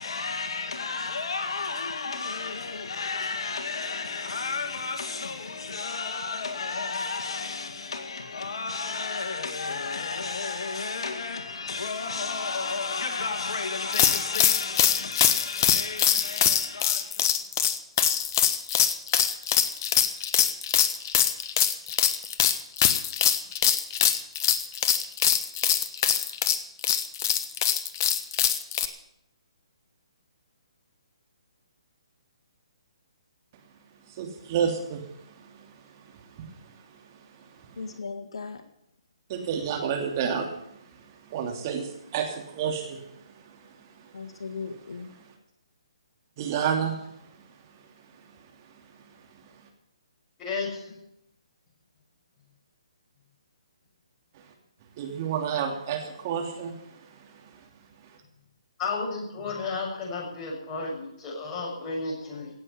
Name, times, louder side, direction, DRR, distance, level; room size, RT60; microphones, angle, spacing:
voice 1, 0.0-17.3 37.8-38.6 44.1-45.1, left 4 dB, 65° left, 1.8 m, -32 dB
sound 1, 13.9-28.9, left 9 dB, 35° left, 1.3 m, -23 dB
voice 2, 34.1-38.0 39.3-45.3 46.4-47.1 55.0-57.6, right 7 dB, 35° right, 2.9 m, -32 dB
voice 3, 50.4-51.0 58.8-62.5, left 4 dB, 20° left, 6.6 m, -33 dB
18.0 x 7.6 x 9.9 m
figure-of-eight pair, 140°, 3 cm